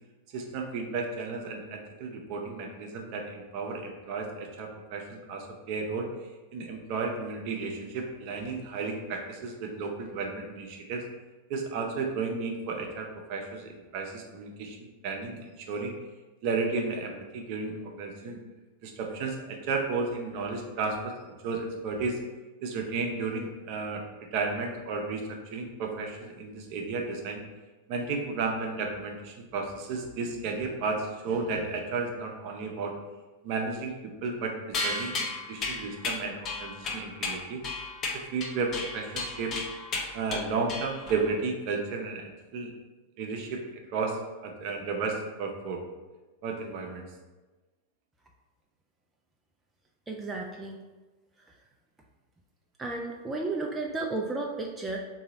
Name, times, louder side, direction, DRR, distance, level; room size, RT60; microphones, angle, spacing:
voice 1, 0.3-6.1 6.5-11.0 11.5-14.8 15.0-15.9 16.4-18.4 18.8-22.2 22.6-24.0 24.3-25.2 25.5-27.4 27.9-32.9 33.4-33.9 34.2-34.6 34.8-37.6 38.3-39.5 40.1-42.7 43.2-43.6 43.9-45.8 46.4-47.0, right 4 dB, 45° right, 1 dB, 0.7 m, -33 dB
sound 1, 34.7-41.3, left 3 dB, 30° left, 0.6 m, -34 dB
voice 2, 50.1-50.8 52.8-55.0, right 3 dB, 15° right, -1 dB, 0.4 m, -33 dB
3.8 x 2.7 x 4.1 m, 1.2 s
figure-of-eight pair, 90°, 0 cm